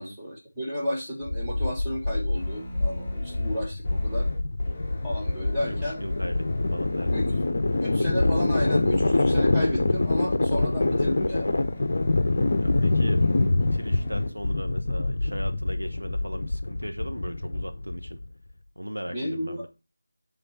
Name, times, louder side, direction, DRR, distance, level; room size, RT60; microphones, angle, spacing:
voice 1, 0.0-4.3 5.0-6.0 7.1-7.3 7.8-11.5 19.1-19.7, equal, 5° right, 1.3 m, -33 dB
sound 1, 1.2-18.3, left 2 dB, 40° left, 0.7 m, -25 dB
guitar riff, 2.3-14.4, equal, 15° left, 1.0 m, -43 dB
voice 2, 5.7-7.3 12.5-18.2 18.8-19.7, equal, 85° right, 1.1 m, -37 dB
6.9 x 3.8 x 5.9 m
figure-of-eight pair, 165°, 0 cm